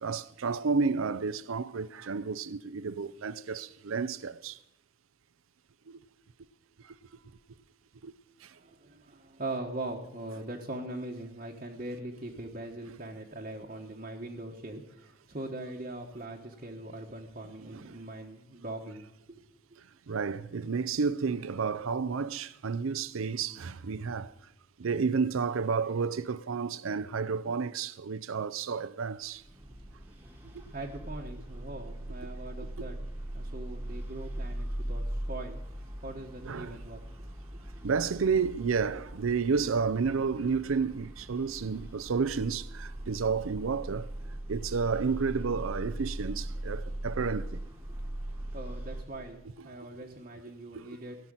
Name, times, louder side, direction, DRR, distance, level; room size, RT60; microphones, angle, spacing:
voice 1, 0.0-4.6 5.9-6.0 8.0-8.1 17.7-17.8 20.1-24.3 24.8-29.4 36.4-36.8 37.8-44.1 44.5-47.6 50.7-50.8, right 5 dB, 80° right, 0.5 m, -31 dB
voice 2, 8.5-19.4 30.7-33.0 33.3-35.6 36.0-37.0 47.9-48.0 48.5-51.2, right 2 dB, 35° right, 1.2 m, -41 dB
sound 1, 29.4-49.0, right 1 dB, 10° right, 1.6 m, -40 dB
17.5 x 6.0 x 8.8 m
head